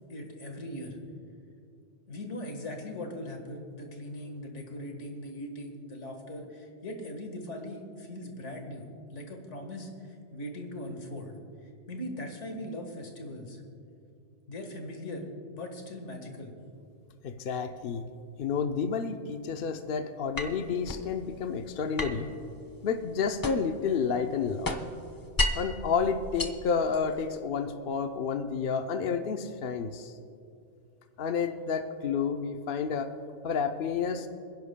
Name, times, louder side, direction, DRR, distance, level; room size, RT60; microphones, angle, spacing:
voice 1, 0.1-1.0 2.1-13.6 14.5-16.5, left 1 dB, 75° left, 3 dB, 1.9 m, -40 dB
voice 2, 17.2-18.1 18.4-22.3 22.8-24.8 25.5-30.1 31.2-33.1 33.4-34.3, left 6 dB, 55° left, 7 dB, 0.7 m, -30 dB
sound 1, 20.4-21.1 22.0-23.8 24.2-25.8 26.2-27.3, left 2 dB, 25° left, 0.5 m, -33 dB
27.5 x 10.5 x 2.2 m, 2.5 s
omnidirectional pair, 1.2 m